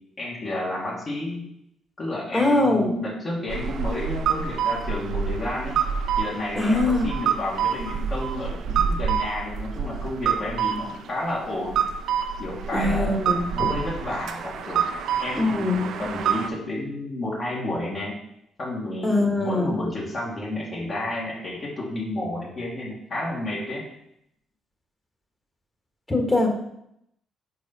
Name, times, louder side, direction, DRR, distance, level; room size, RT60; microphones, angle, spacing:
voice 1, 0.2-1.5 2.0-5.8 6.2-11.8 12.4-14.8 15.2-18.1 18.6-23.8, left 1 dB, 45° left, -6 dB, 1.7 m, -31 dB
voice 2, 2.3-3.0 6.5-7.1 12.7-13.8 15.4-15.8 19.0-19.8 26.1-26.5, left 2 dB, 20° left, 1 dB, 1.3 m, -22 dB
sound 1, 3.5-16.5, right 7 dB, 75° right, 0.5 m, -27 dB
4.8 x 4.3 x 5.3 m, 0.78 s
cardioid pair, 90°, 0 cm